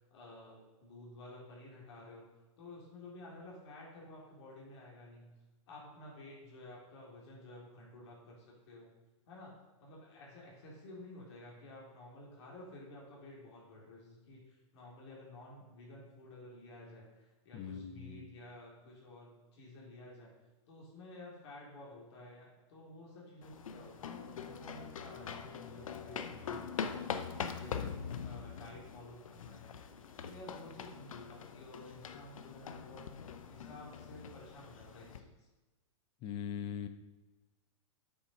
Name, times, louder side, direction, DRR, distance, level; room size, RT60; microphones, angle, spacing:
voice 1, 0.0-2.3 2.6-5.4 5.7-8.9 9.3-9.5 9.8-20.3 20.7-27.0 27.4-29.8 30.2-33.1 33.5-35.5, left 1 dB, 55° left, -3 dB, 3.3 m, -52 dB
voice 2, 17.5-18.2 36.2-36.9, left 8 dB, 30° left, 11 dB, 0.7 m, -41 dB
sound 1, 23.4-35.2, left 7 dB, 85° left, 0.8 m, -43 dB
8.3 x 6.5 x 5.5 m, 1.1 s
hypercardioid pair, 145°, 17 cm